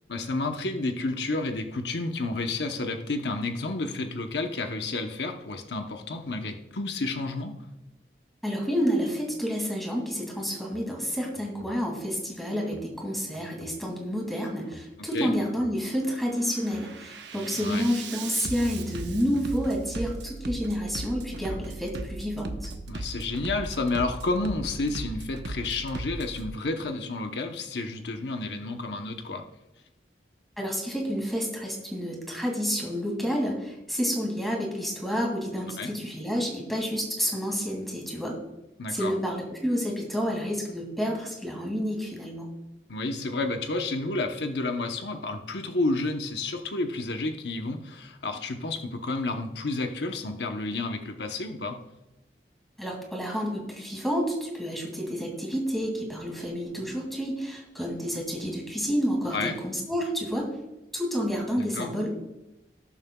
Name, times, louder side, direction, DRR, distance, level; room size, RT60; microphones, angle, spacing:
voice 1, 0.1-7.6 15.1-15.3 17.5-17.9 22.9-29.5 35.8-35.9 38.8-39.1 42.9-51.8 59.3-59.6 61.6-61.9, left 2 dB, 80° left, 5 dB, 0.9 m, -30 dB
voice 2, 8.4-22.7 30.6-38.4 38.9-42.5 52.8-60.5 60.9-62.1, equal, ahead, -1 dB, 2.3 m, -29 dB
Bass drum, 10.6-10.9 11.3-11.8 12.6-12.9 13.3-13.8 14.6-14.9 15.3-15.8 16.2-26.5, right 2 dB, 85° right, 0.9 m, -38 dB
18.5 x 7.3 x 2.3 m, 0.94 s
head